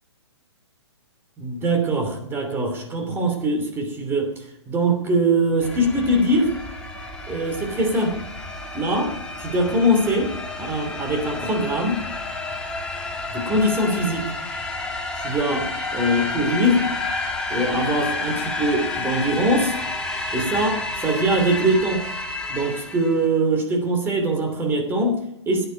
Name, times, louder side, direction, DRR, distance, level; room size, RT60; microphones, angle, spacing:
voice 1, 1.4-6.5 7.3-8.2 8.7-12.0 13.3-14.3 15.2-16.9 17.5-19.7 20.3-22.1 22.5-25.7, right 1 dB, 15° right, 3 dB, 3.0 m, -22 dB
sound 1, 5.6-23.3, left 2 dB, 5° left, 1.9 m, -30 dB
16.5 x 9.7 x 5.2 m, 0.84 s
figure-of-eight pair, 125°, 15 cm